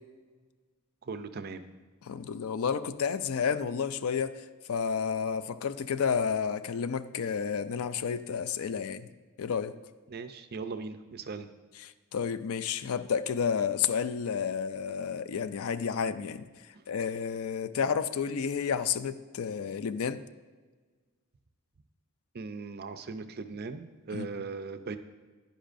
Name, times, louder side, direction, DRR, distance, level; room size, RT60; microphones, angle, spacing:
voice 1, 1.0-1.7 10.1-11.5 16.7-16.8 22.3-25.0, right 4 dB, 45° right, 9 dB, 0.5 m, -39 dB
voice 2, 2.0-9.1 9.4-9.8 11.8-16.5 16.9-20.2 24.1-24.3, left 6 dB, 70° left, 13 dB, 0.4 m, -31 dB
10.5 x 10.0 x 2.6 m, 1.4 s
head